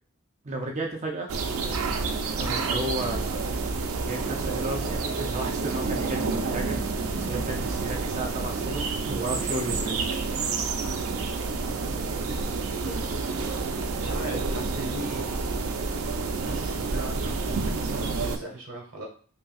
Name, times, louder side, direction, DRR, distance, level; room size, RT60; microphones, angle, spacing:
voice 1, 0.4-1.3 2.4-3.4 4.0-6.8 7.2-10.6, right 1 dB, 35° right, 1 dB, 0.5 m, -34 dB
sound 1, 1.3-18.4, right 4 dB, 85° right, 0.5 m, -29 dB
voice 2, 11.8-12.3 12.8-13.3 13.6-15.5 16.4-19.0, right 1 dB, 70° right, -1 dB, 1.4 m, -40 dB
5.2 x 2.7 x 2.4 m, 0.43 s
head